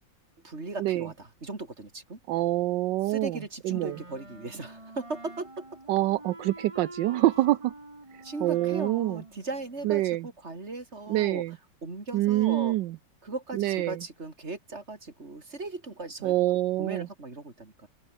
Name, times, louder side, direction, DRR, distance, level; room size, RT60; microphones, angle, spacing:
voice 1, 0.4-2.2 3.1-5.7 8.2-11.4 11.8-12.8 13.2-16.3 16.8-17.9, right 3 dB, 35° right, 4.0 m, -38 dB
voice 2, 2.3-3.4 3.6-4.0 5.9-7.7 8.1-9.2 9.8-10.3 11.1-11.6 12.1-13.0 13.5-14.0 16.2-17.1, right 16 dB, 75° right, 1.3 m, -26 dB
Wind instrument woodwind instrument, 3.7-10.3, right 2 dB, 15° right, 2.7 m, -47 dB
open air
omnidirectional pair, 2.0 m